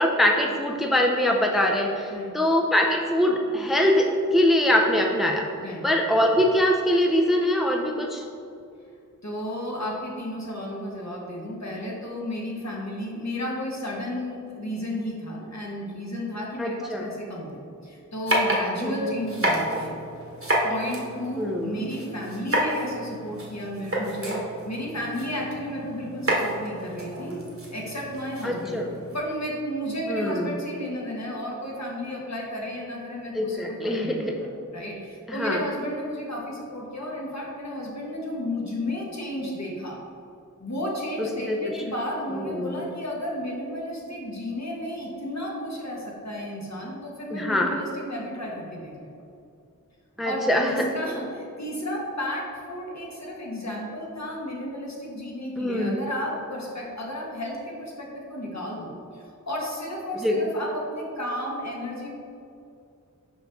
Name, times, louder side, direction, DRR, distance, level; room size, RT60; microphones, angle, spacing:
voice 1, 0.0-5.4 5.8-8.2 16.6-17.0 18.8-19.1 21.4-21.7 28.4-28.9 30.1-30.5 33.3-34.3 35.3-35.6 41.2-41.6 42.3-42.8 47.3-47.7 50.2-50.8 55.6-56.0 60.2-60.4, left 1 dB, ahead, 1 dB, 0.6 m, -23 dB
voice 2, 9.2-20.0 20.6-27.4 27.7-28.8 29.1-40.0 40.6-49.1 50.2-62.1, left 1 dB, 60° left, -3 dB, 1.4 m, -33 dB
sound 1, 18.3-29.2, right 1 dB, 45° right, 1.3 m, -30 dB
6.0 x 5.2 x 3.5 m, 2.5 s
wide cardioid pair, 50°, 31 cm